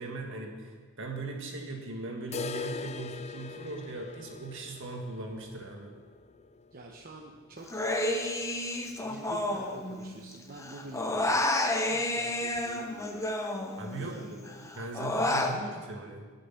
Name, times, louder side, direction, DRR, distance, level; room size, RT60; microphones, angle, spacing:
voice 1, 0.0-5.9 13.8-14.2 14.7-16.2, right 3 dB, 65° right, 2 dB, 2.0 m, -39 dB
sound 1, 2.3-8.1 8.4-8.5 8.9-9.0 9.5-9.6 10.4-10.5, left 5 dB, 30° left, 0.4 m, -42 dB
voice 2, 6.7-8.0 9.0-11.5 11.9-13.2 14.0-14.7, right 2 dB, 45° right, 0 dB, 1.0 m, -46 dB
Human voice, 7.7-10.3 10.6-14.1 14.5-15.6, left 1 dB, 15° left, 0.9 m, -30 dB
19.5 x 6.6 x 5.9 m, 1.6 s
head